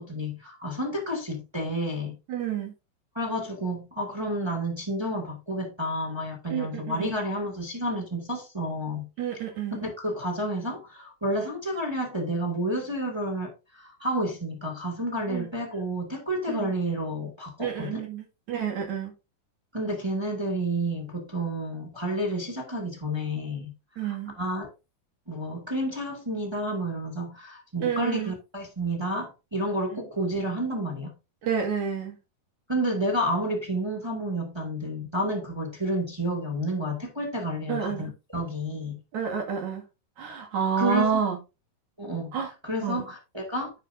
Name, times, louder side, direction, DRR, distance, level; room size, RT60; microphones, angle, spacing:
voice 1, 0.0-2.2 3.1-9.1 9.8-18.0 19.7-23.7 24.0-24.7 25.3-31.1 32.7-39.0 40.8-41.2 42.0-42.4 42.6-43.7, equal, 15° right, 1.0 m, -30 dB
voice 2, 2.3-2.7 6.5-7.2 9.2-9.8 15.3-15.5 16.5-16.7 17.6-19.1 24.0-24.3 27.8-28.3 29.9-30.0 31.4-32.2 37.7-38.1 39.1-39.8 40.2-41.4 42.3-42.5 42.8-43.1, right 7 dB, 55° right, 3.2 m, -29 dB
11.0 x 7.4 x 2.6 m
omnidirectional pair, 4.2 m